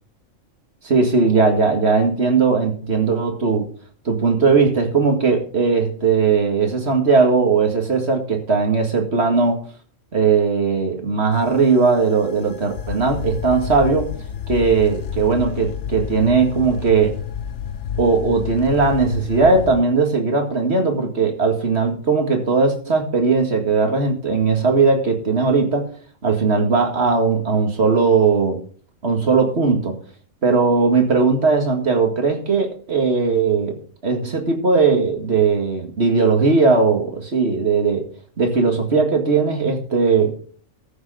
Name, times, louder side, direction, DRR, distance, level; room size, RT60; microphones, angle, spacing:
voice 1, 0.8-3.7 4.1-9.6 10.1-14.1 14.5-17.2 18.0-25.9 26.2-28.6 29.0-30.0 30.4-38.1 38.4-40.4, right 4 dB, 55° right, 4 dB, 2.2 m, -18 dB
sound 1, 11.3-19.8, left 8 dB, 65° left, 1.1 m, -30 dB
14.0 x 6.5 x 5.0 m, 0.43 s
omnidirectional pair, 1.3 m